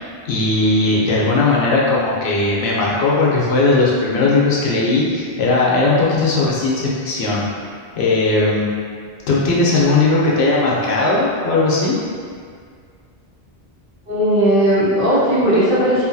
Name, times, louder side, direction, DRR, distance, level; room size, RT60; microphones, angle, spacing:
voice 1, 0.2-7.4 8.0-8.7 9.3-12.0, left 3 dB, 75° left, -5 dB, 0.8 m, -17 dB
voice 2, 14.1-16.1, equal, 55° right, -10 dB, 1.0 m, -16 dB
2.7 x 2.5 x 2.6 m, 2.1 s
omnidirectional pair, 1.1 m